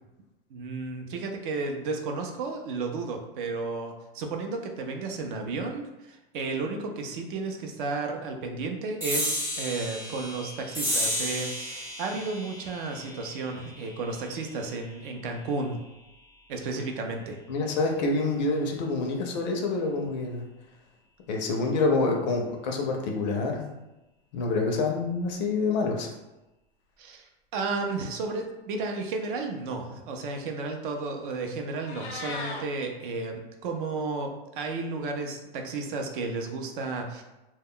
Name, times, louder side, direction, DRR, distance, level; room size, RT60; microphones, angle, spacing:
voice 1, 0.5-15.8 16.5-17.4 27.0-27.2 27.5-37.2, right 3 dB, 55° right, 4 dB, 0.5 m, -33 dB
sound 1, 9.0-15.9, equal, 5° right, 0.6 m, -34 dB
voice 2, 17.5-20.4 21.3-23.7 24.3-26.1, left 3 dB, 45° left, 2 dB, 0.5 m, -27 dB
Meow, 31.6-32.6, left 3 dB, 85° left, 0.7 m, -37 dB
2.2 x 2.1 x 3.6 m, 0.99 s
supercardioid pair, 150°, 32 cm